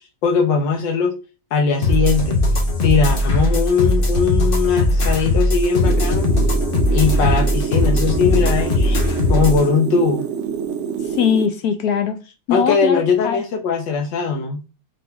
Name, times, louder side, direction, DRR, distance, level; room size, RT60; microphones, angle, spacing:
voice 1, 0.2-1.1 1.5-2.4 2.8-6.3 6.9-9.0 9.3-10.2 12.5-14.6, left 5 dB, 85° left, 1.5 m, -20 dB
sound 1, 1.8-9.6, left 1 dB, 45° left, 0.7 m, -18 dB
sound 2, 5.8-11.5, right 7 dB, 70° right, 0.6 m, -26 dB
voice 2, 11.0-12.2 12.5-13.4, left 7 dB, 70° left, 0.9 m, -21 dB
3.7 x 3.4 x 3.3 m
omnidirectional pair, 1.9 m